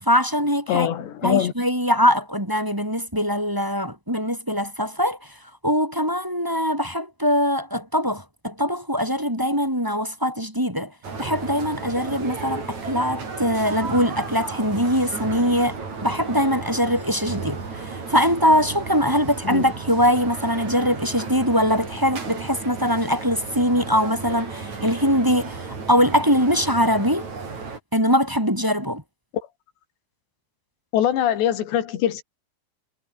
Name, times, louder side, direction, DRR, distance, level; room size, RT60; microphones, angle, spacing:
voice 1, 0.0-0.9 1.2-5.4 5.6-10.9 11.2-27.3 27.9-29.0, equal, 5° right, 3.3 m, -22 dB
voice 2, 0.7-1.5 19.5-19.6 30.9-32.2, left 10 dB, 70° left, 4.7 m, -22 dB
sound 1, 11.0-27.8, right 4 dB, 40° right, 6.1 m, -34 dB
omnidirectional pair, 5.2 m